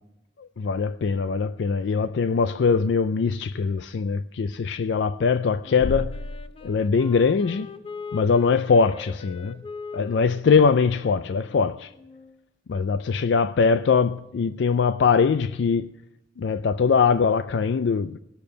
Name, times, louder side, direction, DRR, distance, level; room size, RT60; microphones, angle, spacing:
voice 1, 0.4-6.2 6.6-7.7 8.1-9.6 9.9-11.9 12.7-15.9 16.4-18.2, left 5 dB, 70° left, 0.4 m, -22 dB
Wind instrument woodwind instrument, 5.6-12.4, left 4 dB, 30° left, 0.7 m, -41 dB
18.0 x 6.9 x 6.5 m
head